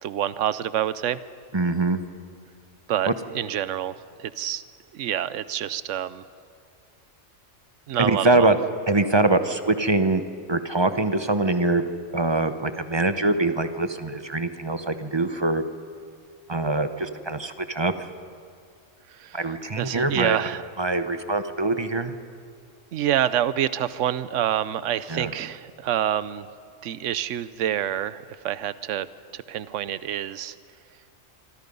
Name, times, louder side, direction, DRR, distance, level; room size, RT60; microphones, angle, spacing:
voice 1, 0.0-1.2 2.9-4.6 4.9-6.2 7.9-8.5 19.1-19.4 19.8-20.7 22.9-26.5 26.8-29.1 29.3-30.5, right 11 dB, 70° right, 15 dB, 1.0 m, -27 dB
voice 2, 1.5-2.0 3.1-3.2 8.0-8.6 8.9-10.2 10.5-11.8 12.1-15.7 16.5-18.1 19.3-20.4 20.8-22.1 25.1-25.3, right 2 dB, 25° right, 9 dB, 0.9 m, -23 dB
25.5 x 25.0 x 5.5 m, 2.4 s
omnidirectional pair, 1.3 m